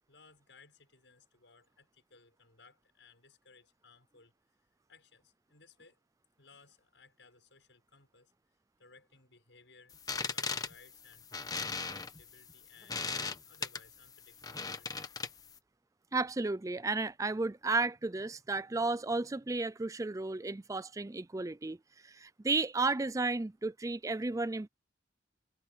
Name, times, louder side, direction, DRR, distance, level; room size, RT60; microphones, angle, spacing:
voice 1, 0.1-4.3 4.9-6.0 6.4-8.3 8.8-11.3 11.6-14.9, left 4 dB, 75° left, 6.7 m, -61 dB
sound 1, 9.9-15.6, left 4 dB, 20° left, 1.1 m, -38 dB
voice 2, 16.1-21.8 22.0-24.7, right 3 dB, 15° right, 0.4 m, -33 dB
head